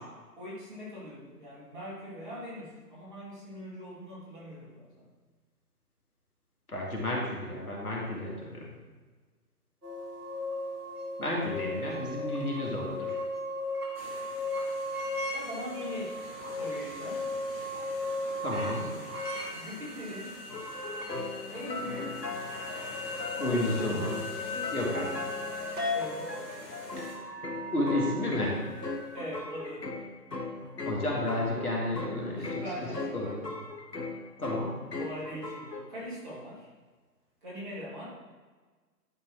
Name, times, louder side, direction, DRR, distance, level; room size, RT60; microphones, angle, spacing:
voice 1, 0.4-5.0 15.3-16.2 16.5-17.3 19.5-20.4 21.5-22.3 23.4-24.2 25.9-26.4 29.1-29.9 30.6-30.7 32.4-33.5 35.0-36.7 37.4-38.1, equal, 30° right, -7 dB, 2.7 m, -41 dB
voice 2, 6.7-8.6 11.2-13.2 18.4-18.9 23.4-24.1 24.7-25.1 27.7-28.6 30.8-32.6 33.1-33.4 34.4-34.7, left 1 dB, 65° left, -3 dB, 2.2 m, -31 dB
sound 1, 9.8-29.2, left 2 dB, 70° right, 2.1 m, -37 dB
sound 2, 13.9-27.2, left 2 dB, 35° left, 1.5 m, -48 dB
sound 3, 20.5-35.8, left 3 dB, 85° left, 1.1 m, -39 dB
11.0 x 4.0 x 4.5 m, 1.4 s
figure-of-eight pair, 145°, 48 cm